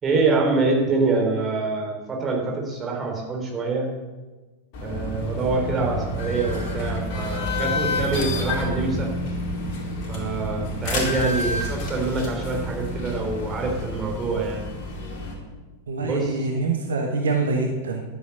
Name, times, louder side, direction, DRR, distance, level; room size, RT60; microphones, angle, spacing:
voice 1, 0.0-3.9 4.8-9.1 10.1-14.7 16.0-16.5, right 3 dB, 25° right, 0 dB, 3.7 m, -25 dB
sound 1, 4.7-15.3, left 1 dB, 45° left, 4.3 m, -29 dB
voice 2, 15.9-18.0, right 3 dB, 65° right, 3 dB, 1.4 m, -25 dB
12.0 x 9.5 x 6.6 m, 1.2 s
figure-of-eight pair, 90°, 0 cm